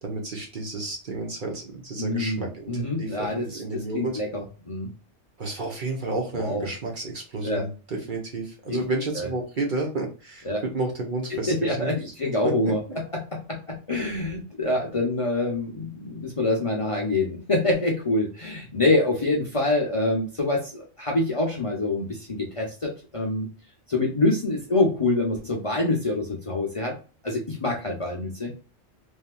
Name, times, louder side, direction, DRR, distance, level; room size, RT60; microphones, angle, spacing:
voice 1, 0.0-4.2 5.4-12.1 12.4-12.7, right 2 dB, 45° right, 1 dB, 1.0 m, -31 dB
voice 2, 2.0-3.5 3.9-4.9 6.3-6.7 7.4-7.6 8.7-8.8 9.1-9.3 10.5-10.6 11.5-12.8 13.1-23.5 23.9-27.0 27.2-28.5, left 2 dB, 35° left, -2 dB, 0.7 m, -26 dB
3.3 x 2.7 x 2.3 m, 0.35 s
omnidirectional pair, 1.2 m